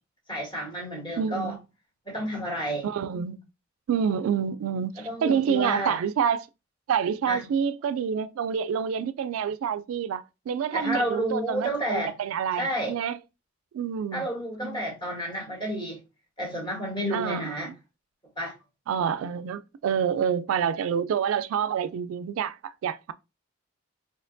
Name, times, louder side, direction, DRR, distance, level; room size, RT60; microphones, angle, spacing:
voice 1, 0.3-1.6 2.1-2.9 5.0-6.0 7.3-7.4 10.7-12.1 12.6-12.9 14.1-16.0 16.4-17.7 18.4-18.5, equal, 25° left, 1.7 m, -30 dB
voice 2, 1.2-1.6 2.8-3.4 3.9-6.5 6.9-13.2 13.7-14.2 14.6-14.8 17.1-17.8 18.9-23.1, right 7 dB, 85° right, 0.3 m, -28 dB
4.2 x 2.9 x 2.6 m
head